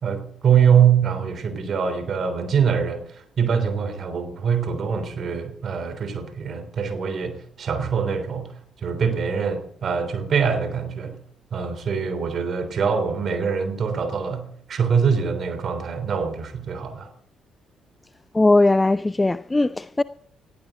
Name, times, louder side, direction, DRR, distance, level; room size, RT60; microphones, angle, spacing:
voice 1, 0.0-8.5 8.8-11.2 11.5-17.1, right 7 dB, 50° right, 3.4 m, -23 dB
voice 2, 18.3-20.0, left 2 dB, 20° left, 0.5 m, -19 dB
19.0 x 15.5 x 3.8 m
hypercardioid pair, 45°, 0 cm